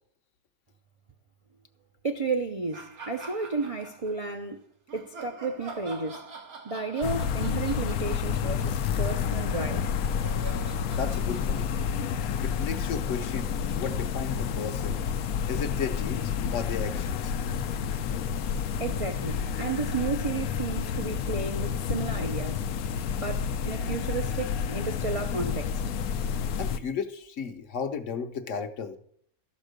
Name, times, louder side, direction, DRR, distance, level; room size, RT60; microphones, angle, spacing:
voice 1, 2.0-4.6 4.9-6.3 6.6-9.9 18.8-22.6 23.2-25.8, right 4 dB, 45° right, 0.4 m, -32 dB
sound 1, 2.7-4.4 4.9-13.1, right 3 dB, 90° right, 2.1 m, -46 dB
sound 2, 7.0-26.8, left 7 dB, 85° left, 1.1 m, -30 dB
voice 2, 10.9-11.7 12.4-15.0 15.5-17.3 26.6-29.0, left 6 dB, 60° left, 1.1 m, -34 dB
12.5 x 5.3 x 6.5 m
omnidirectional pair, 1.5 m